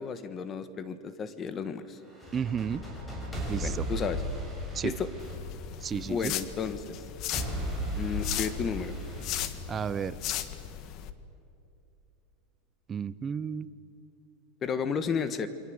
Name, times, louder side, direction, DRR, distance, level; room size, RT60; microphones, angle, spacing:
voice 1, 0.0-2.0 3.6-4.2 4.8-5.1 6.0-6.9 7.9-9.0 14.6-15.5, left 6 dB, 25° left, 12 dB, 1.4 m, -33 dB
sound 1, 2.0-6.2 7.3-10.2, equal, 5° left, 6.5 m, -36 dB
voice 2, 2.3-2.8 3.5-3.8 4.7-4.9 5.8-6.3 9.7-10.2 12.9-13.7, right 7 dB, 20° right, 15 dB, 0.8 m, -32 dB
sound 2, 5.2-11.1, left 11 dB, 45° left, 1.4 m, -37 dB
28.5 x 23.5 x 8.0 m, 2.8 s
supercardioid pair, 145°, 0 cm